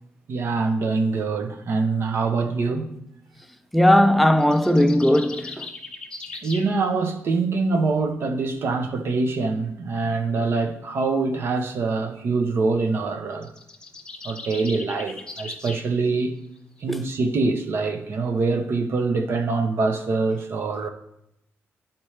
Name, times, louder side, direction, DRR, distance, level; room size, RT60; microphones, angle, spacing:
voice 1, 0.3-2.9 6.4-13.5 14.2-16.3 16.8-20.9, right 3 dB, 55° right, 0.9 m, -24 dB
voice 2, 3.7-5.7 16.9-17.0, left 1 dB, ahead, 0.4 m, -18 dB
sound 1, 4.4-6.7 13.3-15.9, left 3 dB, 20° left, 0.9 m, -39 dB
12.0 x 4.4 x 3.2 m
cardioid pair, 115°, 5 cm